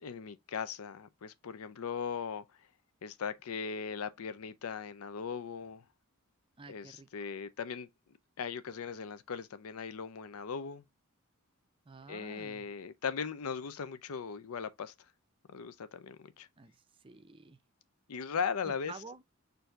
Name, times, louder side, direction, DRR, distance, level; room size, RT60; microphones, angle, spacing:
voice 1, 0.0-2.4 3.0-5.8 6.7-7.9 8.4-10.8 12.1-14.9 15.5-16.5 18.1-18.9, left 6 dB, 80° left, 0.5 m, -38 dB
voice 2, 6.6-7.3 11.9-12.7 16.6-17.6 18.6-19.2, right 4 dB, 25° right, 0.5 m, -50 dB
4.5 x 2.6 x 4.5 m
head